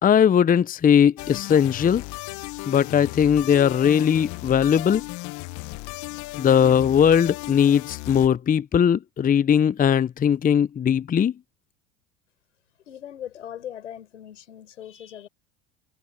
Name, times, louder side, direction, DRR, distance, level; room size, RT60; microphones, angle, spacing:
voice 1, 0.0-2.0 2.7-5.0 6.4-11.3, left 8 dB, 25° left, 0.8 m, -19 dB
sound 1, 1.2-8.3, left 23 dB, 55° left, 1.0 m, -35 dB
voice 2, 12.9-15.3, left 10 dB, 85° left, 6.8 m, -39 dB
hypercardioid pair, 80°, 35 cm